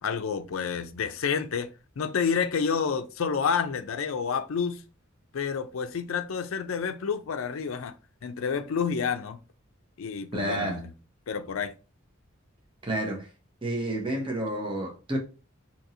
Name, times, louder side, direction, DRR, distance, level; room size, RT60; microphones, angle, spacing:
voice 1, 0.0-1.7 2.0-4.8 5.3-8.0 8.2-9.4 10.0-10.9 11.3-11.7, left 6 dB, 80° left, 0.4 m, -29 dB
voice 2, 10.3-10.8 12.8-13.3 13.6-15.2, right 1 dB, 25° right, 0.8 m, -30 dB
2.8 x 2.6 x 4.0 m
head